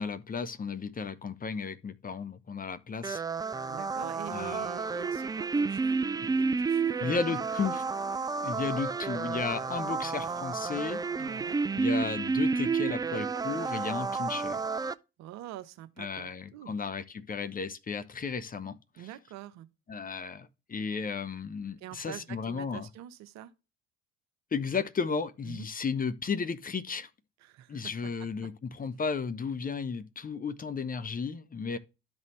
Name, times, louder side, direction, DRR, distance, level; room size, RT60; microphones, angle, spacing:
voice 1, 0.0-3.2 4.3-4.7 7.0-7.8 8.4-11.0 11.8-14.6 16.0-18.8 19.9-22.9 24.5-27.1 27.7-31.8, left 5 dB, 25° left, 0.9 m, -34 dB
sound 1, 3.0-14.9, right 4 dB, 15° right, 0.4 m, -31 dB
voice 2, 3.7-6.0 6.3-7.4 11.2-11.6 15.2-16.7 19.0-19.7 21.8-23.5 25.4-25.7 27.4-27.8, right 13 dB, 60° right, 0.9 m, -45 dB
12.5 x 4.1 x 3.2 m
figure-of-eight pair, 50°, 31 cm